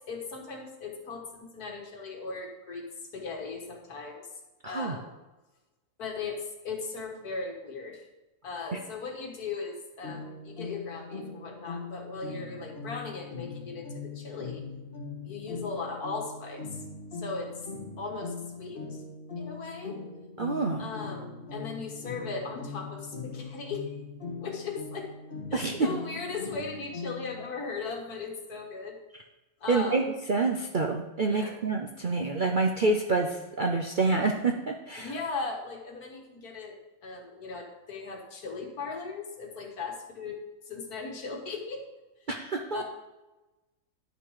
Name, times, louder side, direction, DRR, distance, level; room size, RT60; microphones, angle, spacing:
voice 1, 0.1-2.8 3.1-4.3 4.7-5.1 6.0-6.4 6.6-8.1 8.4-14.6 15.2-16.8 17.2-17.5 18.0-19.0 19.4-20.0 20.8-23.9 24.4-25.1 25.5-29.0 29.6-30.0 31.3-31.6 35.0-36.8 37.0-40.4 40.7-41.9 42.7-42.8, left 4 dB, 75° left, 2 dB, 2.0 m, -38 dB
voice 2, 4.6-5.0 8.7-8.8 20.4-20.9 25.5-25.9 29.7-35.1 42.3-42.8, right 3 dB, 50° right, 2 dB, 0.6 m, -27 dB
sound 1, 10.0-27.5, left 4 dB, 35° left, 1.6 m, -41 dB
10.5 x 6.0 x 4.8 m, 1.1 s
omnidirectional pair, 1.6 m